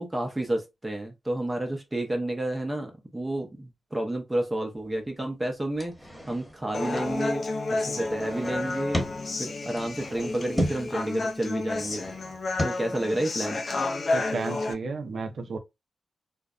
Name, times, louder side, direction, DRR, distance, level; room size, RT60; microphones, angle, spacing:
voice 1, 0.0-5.9 6.3-7.4 7.8-9.1 9.4-12.0 12.6-13.6, right 1 dB, 20° right, 0.7 m, -30 dB
sound 1, 4.8-5.0 5.8-7.2 7.9-9.3 9.8-11.0 11.5-12.7, equal, 10° left, 1.2 m, -34 dB
Human voice, 6.7-14.7, left 3 dB, 55° left, 0.4 m, -31 dB
voice 2, 14.1-15.6, right 4 dB, 70° right, 0.5 m, -32 dB
2.5 x 2.1 x 2.3 m
supercardioid pair, 40°, 0 cm